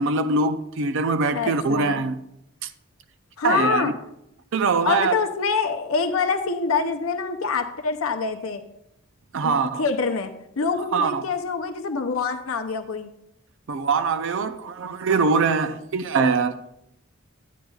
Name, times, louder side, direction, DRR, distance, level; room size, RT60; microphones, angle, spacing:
voice 1, 0.0-2.2 2.6-2.7 3.4-3.9 4.5-5.1 9.3-9.8 10.9-11.2 13.7-16.6, right 4 dB, 60° right, 0.5 m, -23 dB
voice 2, 1.3-2.0 3.4-3.9 4.8-8.6 9.4-10.3 10.6-13.1, left 5 dB, 70° left, 0.6 m, -25 dB
10.0 x 9.2 x 2.3 m
head